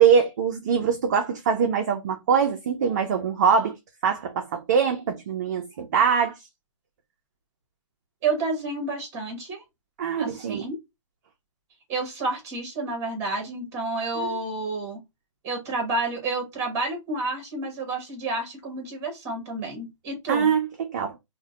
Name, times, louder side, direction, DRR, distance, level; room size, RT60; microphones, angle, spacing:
voice 1, 0.0-3.7 4.0-6.4 10.0-10.6 14.2-14.3 20.3-21.1, right 7 dB, 35° right, 0.4 m, -23 dB
voice 2, 8.2-9.6 10.2-10.8 11.9-15.0 15.4-20.5, right 3 dB, 15° right, 1.0 m, -30 dB
2.6 x 2.1 x 3.7 m
hypercardioid pair, 165°, 17 cm